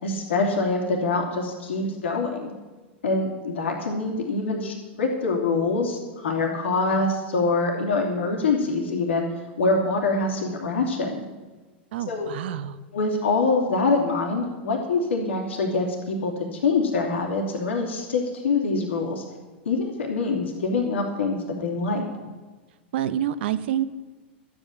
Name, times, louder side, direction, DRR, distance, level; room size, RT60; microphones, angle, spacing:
voice 1, 0.0-2.5 3.0-9.3 9.6-11.2 12.1-12.3 12.9-19.2 19.6-22.0, left 3 dB, 85° left, 0 dB, 3.0 m, -25 dB
voice 2, 11.9-12.8 22.9-23.8, right 11 dB, 70° right, 13 dB, 1.0 m, -27 dB
12.5 x 9.0 x 8.6 m, 1.3 s
hypercardioid pair, 110°, 6 cm